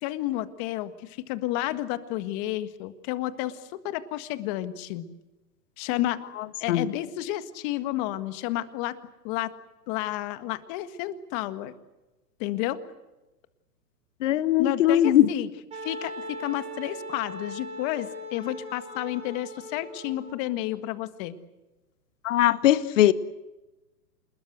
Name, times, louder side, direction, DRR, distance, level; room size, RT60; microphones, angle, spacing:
voice 1, 0.0-5.0 5.8-6.2 6.6-8.9 9.2-9.5 9.9-11.7 12.4-12.8 14.6-15.5 15.7-21.4, left 15 dB, 30° left, 1.7 m, -31 dB
voice 2, 14.2-15.3 22.2-23.1, left 12 dB, 50° left, 1.3 m, -20 dB
Wind instrument woodwind instrument, 15.7-20.3, equal, 10° right, 5.9 m, -39 dB
27.5 x 21.0 x 8.0 m
hypercardioid pair, 140°, 49 cm